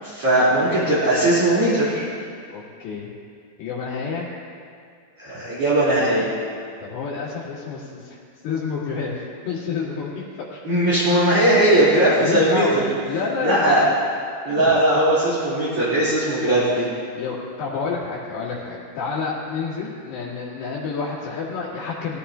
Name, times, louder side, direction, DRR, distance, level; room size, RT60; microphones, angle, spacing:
voice 1, 0.2-2.0 5.2-6.3 10.6-12.8 13.4-13.8 14.4-16.9, right 1 dB, 35° right, -12 dB, 3.9 m, -19 dB
voice 2, 2.5-3.1 3.6-4.3 6.8-8.2 8.4-10.6 12.2-13.9 14.5-14.8 17.1-22.2, left 5 dB, 70° left, -7 dB, 3.9 m, -29 dB
20.5 x 14.0 x 2.8 m, 2.3 s
omnidirectional pair, 4.8 m